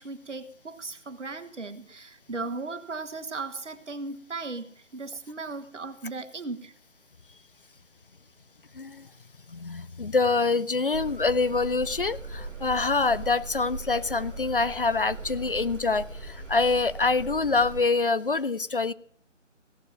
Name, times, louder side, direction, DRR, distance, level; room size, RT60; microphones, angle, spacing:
voice 1, 0.0-6.7, right 3 dB, 70° right, 9 dB, 1.4 m, -37 dB
voice 2, 8.7-9.1 9.5-18.9, left 3 dB, 45° left, 18 dB, 0.4 m, -25 dB
sound 1, 10.9-17.8, right 2 dB, 5° right, 0.8 m, -39 dB
16.5 x 6.8 x 5.9 m, 0.62 s
figure-of-eight pair, 160°, 38 cm